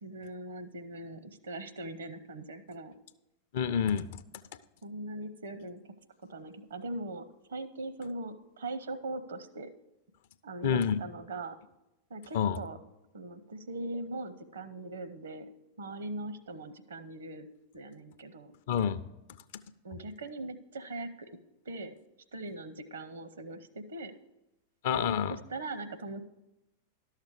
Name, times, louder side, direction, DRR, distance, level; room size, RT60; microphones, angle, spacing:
voice 1, 0.0-2.9 4.8-5.8 6.3-9.7 10.4-11.6 12.1-12.8 13.1-15.5 15.8-17.5 17.7-18.5 19.8-21.3 21.6-22.0 22.3-24.1 25.3-26.2, right 2 dB, 65° right, 12 dB, 0.7 m, -40 dB
voice 2, 3.5-4.1 10.6-11.0 12.3-12.6 18.7-19.0 24.8-25.4, left 7 dB, 55° left, 13 dB, 0.5 m, -27 dB
11.5 x 6.6 x 4.6 m, 0.96 s
figure-of-eight pair, 90°, 0 cm